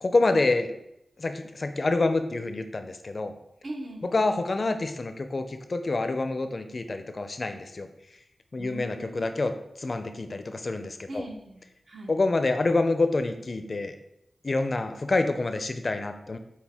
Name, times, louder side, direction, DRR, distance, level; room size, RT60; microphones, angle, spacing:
voice 1, 0.0-0.7 1.2-3.3 4.0-7.9 8.5-11.3 12.1-13.9 14.4-16.4, left 2 dB, 50° left, 8 dB, 0.4 m, -27 dB
voice 2, 3.6-4.1 8.6-9.3 11.1-12.1, right 1 dB, 60° right, 1 dB, 0.8 m, -40 dB
6.0 x 2.2 x 3.5 m, 0.83 s
cardioid pair, 50°, 0 cm